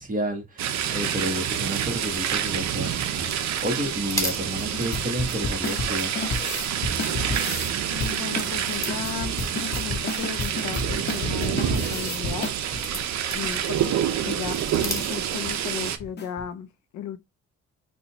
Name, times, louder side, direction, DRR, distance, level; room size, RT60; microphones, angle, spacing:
voice 1, 0.0-6.1, equal, 25° right, 1.4 m, -31 dB
sound 1, 0.6-16.0, right 10 dB, 65° right, 0.6 m, -28 dB
sound 2, 1.6-16.0, left 1 dB, 10° left, 1.3 m, -40 dB
sound 3, 4.6-7.7 8.0-13.0 13.4-13.5 13.8-13.9 14.3-14.5 14.8-14.9 15.3-15.5 16.0-16.5, left 3 dB, 35° left, 0.8 m, -32 dB
voice 2, 7.9-13.0 13.3-17.2, left 9 dB, 75° left, 0.6 m, -36 dB
4.1 x 2.3 x 2.8 m
cardioid pair, 90°, 30 cm